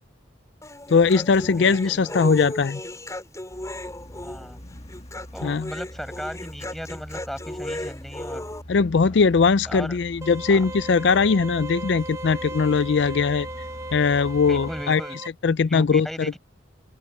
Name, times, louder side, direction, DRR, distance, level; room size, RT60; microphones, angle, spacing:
Human voice, 0.6-8.6, left 1 dB, 20° left, 4.8 m, -35 dB
voice 1, 0.9-2.8 5.4-5.7 8.7-13.5 13.9-15.0 15.4-16.4, left 5 dB, 70° left, 0.5 m, -20 dB
voice 2, 1.5-2.2 4.2-4.6 5.3-8.5 9.1-9.2 9.7-10.0 10.5-10.6 14.5-15.2 15.7-16.4, equal, ahead, 6.7 m, -37 dB
sound 1, 3.5-14.8, equal, 35° left, 2.2 m, -42 dB
sound 2, 10.2-15.3, right 2 dB, 15° right, 1.3 m, -37 dB
open air
head